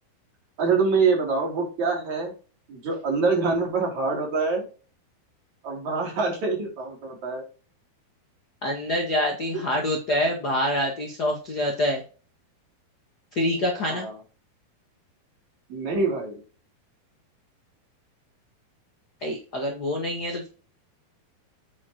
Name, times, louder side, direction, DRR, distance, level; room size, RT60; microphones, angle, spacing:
voice 1, 0.6-2.3 2.7-4.6 5.6-7.4 13.9-14.1 15.7-16.4, right 4 dB, 50° right, -1 dB, 4.3 m, -25 dB
voice 2, 8.6-12.0 13.3-14.1 19.2-20.5, left 1 dB, 45° left, 1 dB, 1.2 m, -26 dB
8.4 x 6.8 x 3.0 m, 0.35 s
omnidirectional pair, 4.4 m